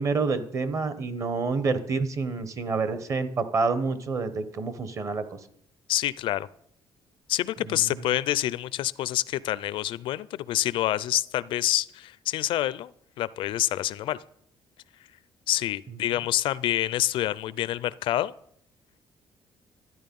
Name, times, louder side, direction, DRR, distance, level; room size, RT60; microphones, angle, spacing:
voice 1, 0.0-5.4 7.6-8.0, right 4 dB, 35° right, 1.0 m, -28 dB
voice 2, 5.9-6.5 7.3-12.9 13.2-14.2 15.5-18.3, left 14 dB, 70° left, 0.4 m, -27 dB
12.5 x 9.7 x 5.3 m
cardioid pair, 160°, 9 cm